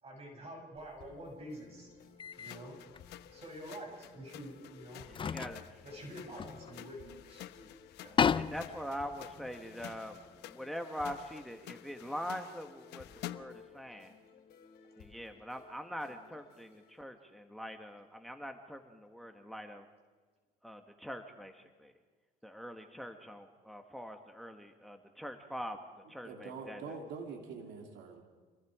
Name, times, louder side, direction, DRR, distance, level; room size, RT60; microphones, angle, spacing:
voice 1, 0.0-1.9 2.4-2.7 3.3-5.0 5.8-7.7 8.0-8.2, right 1 dB, 35° right, 1 dB, 6.9 m, -47 dB
sound 1, 0.8-1.0 2.2-2.6 2.9-3.1 4.3-4.4 5.0-7.2 7.6-7.7 7.9-10.4, left 7 dB, 30° left, 0.6 m, -35 dB
sound 2, 1.0-17.0, left 6 dB, 65° left, 4.0 m, -59 dB
sound 3, 2.3-13.7, left 14 dB, 85° left, 0.9 m, -51 dB
voice 2, 5.1-5.8 8.3-10.2 10.5-14.1 15.0-19.9 20.6-21.9 22.4-25.8 26.1-26.8, equal, ahead, 6 dB, 1.5 m, -43 dB
voice 3, 26.2-28.2, right 5 dB, 85° right, 3 dB, 3.1 m, -44 dB
27.5 x 22.0 x 5.0 m, 1.4 s
cardioid pair, 110°, 17 cm